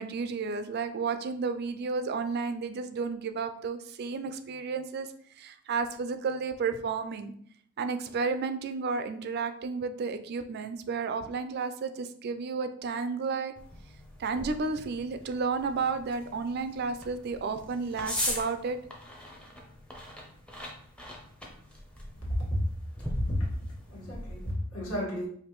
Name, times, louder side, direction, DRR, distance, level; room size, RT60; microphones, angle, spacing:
voice 1, 0.0-5.1 5.4-7.3 7.8-13.5 14.2-18.8, right 4 dB, 45° right, 9 dB, 0.3 m, -32 dB
sound 1, 13.6-24.5, left 1 dB, 5° left, 0.6 m, -40 dB
voice 2, 22.2-22.7 23.0-23.6 23.9-25.3, equal, 75° left, -3 dB, 1.5 m, -31 dB
5.0 x 2.5 x 3.0 m, 0.62 s
head